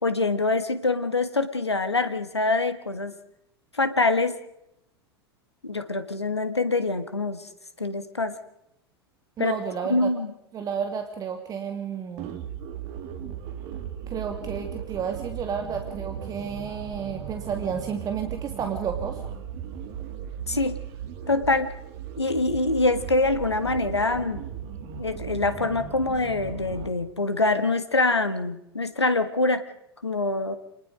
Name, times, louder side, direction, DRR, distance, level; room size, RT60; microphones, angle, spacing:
voice 1, 0.0-3.1 3.7-4.4 5.6-7.5 7.8-8.4 9.4-9.5 9.9-10.3 20.5-20.8 21.3-21.7 22.2-24.4 25.0-29.6 30.0-30.6, left 3 dB, 85° left, 10 dB, 1.5 m, -25 dB
voice 2, 9.4-10.1 10.5-12.4 14.1-19.2, right 7 dB, 25° right, 6 dB, 2.2 m, -31 dB
sound 1, 12.2-26.9, right 8 dB, 45° right, 2.7 m, -37 dB
27.5 x 20.0 x 5.1 m, 0.81 s
figure-of-eight pair, 90°, 14 cm